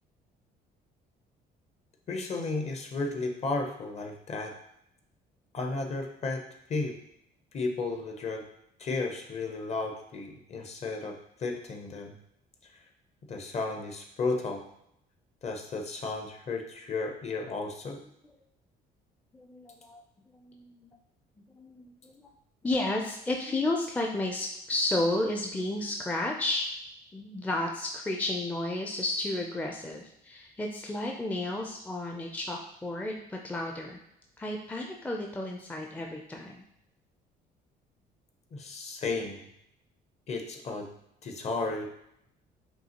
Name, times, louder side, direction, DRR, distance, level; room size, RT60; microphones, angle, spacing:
voice 1, 2.1-4.6 5.5-6.4 6.7-7.0 7.5-8.5 8.8-12.1 12.7-12.8 13.3-14.6 15.4-18.0 38.5-39.5 40.3-40.9 41.2-41.9, left 3 dB, 40° left, 3 dB, 0.7 m, -33 dB
voice 2, 19.3-20.0 20.3-20.9 21.5-22.3 22.6-26.7 27.1-34.0 34.4-36.6, left 2 dB, 10° left, 1 dB, 0.4 m, -32 dB
5.4 x 2.8 x 2.9 m, 0.77 s
cardioid pair, 110°, 17 cm